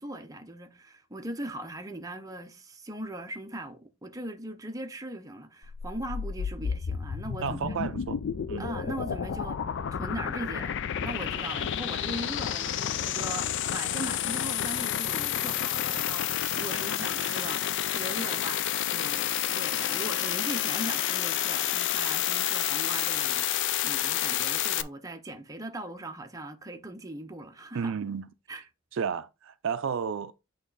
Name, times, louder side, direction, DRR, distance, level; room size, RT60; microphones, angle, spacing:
voice 1, 0.0-7.8 8.6-9.6 9.9-27.9 28.5-28.6, right 1 dB, 15° right, 0.7 m, -39 dB
sound 1, 5.6-24.8, left 10 dB, 55° left, 0.4 m, -30 dB
voice 2, 7.4-8.2 8.5-8.7 27.7-28.3 28.9-30.3, right 6 dB, 60° right, 0.4 m, -32 dB
8.4 x 3.0 x 3.9 m
head